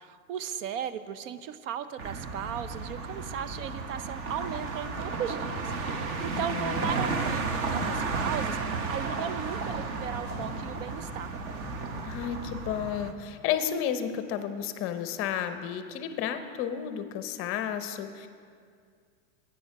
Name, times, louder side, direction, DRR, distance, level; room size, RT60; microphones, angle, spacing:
voice 1, 0.0-11.3, right 8 dB, 70° right, 13 dB, 0.7 m, -36 dB
sound 1, 2.0-13.1, right 4 dB, 35° right, 0.8 m, -33 dB
Putting Trash bag in Trash can, 4.2-12.3, left 2 dB, 10° right, 1.7 m, -48 dB
voice 2, 6.3-6.9 12.0-18.3, left 9 dB, 35° left, 9 dB, 0.6 m, -32 dB
11.0 x 8.5 x 5.9 m, 2.2 s
supercardioid pair, 140°, 40 cm